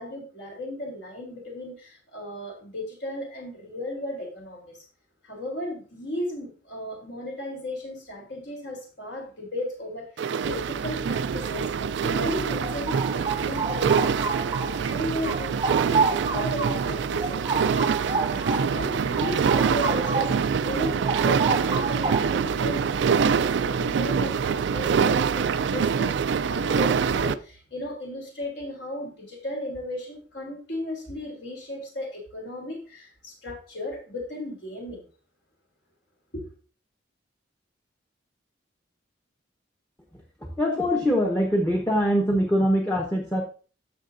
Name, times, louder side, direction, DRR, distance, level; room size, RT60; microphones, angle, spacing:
voice 1, 0.0-4.8 5.2-35.0 36.3-36.5, left 1 dB, 65° left, 0 dB, 3.4 m, -35 dB
sound 1, 10.2-27.3, right 6 dB, 70° right, 0.3 m, -25 dB
sound 2, 12.6-14.9 15.2-20.5 20.8-22.5, right 4 dB, 25° right, 0.6 m, -29 dB
voice 2, 40.4-43.4, equal, 10° left, 2 dB, 0.9 m, -23 dB
13.5 x 5.7 x 2.6 m, 0.38 s
head